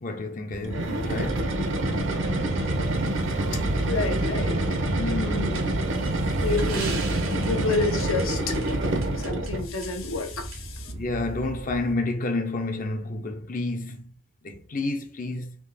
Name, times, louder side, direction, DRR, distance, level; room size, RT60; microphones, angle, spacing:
voice 1, 0.0-3.0 5.0-5.4 7.2-7.3 10.9-14.1 14.4-15.5, left 2 dB, 40° left, 0.6 m, -31 dB
sound 1, 0.5-12.0, right 2 dB, 30° right, 0.4 m, -35 dB
sound 2, 0.6-9.7, right 1 dB, 65° right, 0.9 m, -27 dB
voice 2, 3.9-5.9 6.4-8.6 9.2-10.9, left 3 dB, 80° left, 1.0 m, -30 dB
sound 3, 5.5-9.5 9.8-9.9 10.5-10.6, right 4 dB, 85° right, 1.4 m, -39 dB
3.7 x 2.9 x 4.0 m
head